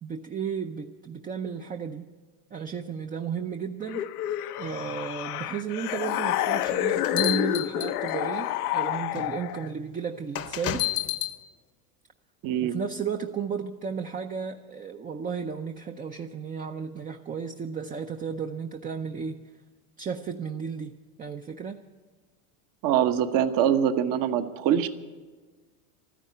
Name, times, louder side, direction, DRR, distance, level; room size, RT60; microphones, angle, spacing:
voice 1, 0.0-2.1 2.5-4.0 4.6-10.8 12.6-19.4 20.0-21.8, right 6 dB, 20° right, 5 dB, 0.5 m, -34 dB
sound 1, 3.9-9.7, left 12 dB, 90° left, 0.8 m, -29 dB
sound 2, 6.6-8.4 9.2-9.3 10.3-11.4, left 13 dB, 35° left, 0.8 m, -30 dB
voice 2, 12.4-12.8 22.8-24.9, right 9 dB, 50° right, 10 dB, 1.1 m, -23 dB
13.0 x 10.0 x 9.6 m, 1.3 s
supercardioid pair, 120°, 44 cm